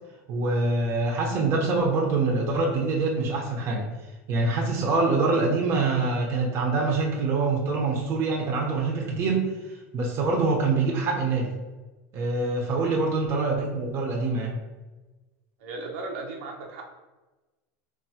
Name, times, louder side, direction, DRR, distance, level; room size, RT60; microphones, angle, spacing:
voice 1, 0.3-3.9 4.3-9.5 9.9-11.5 12.1-14.5, right 3 dB, 35° right, 0 dB, 0.7 m, -25 dB
voice 2, 15.6-16.9, right 3 dB, 80° right, 0 dB, 0.7 m, -36 dB
4.7 x 2.6 x 2.7 m, 1.2 s
supercardioid pair, 155°, 7 cm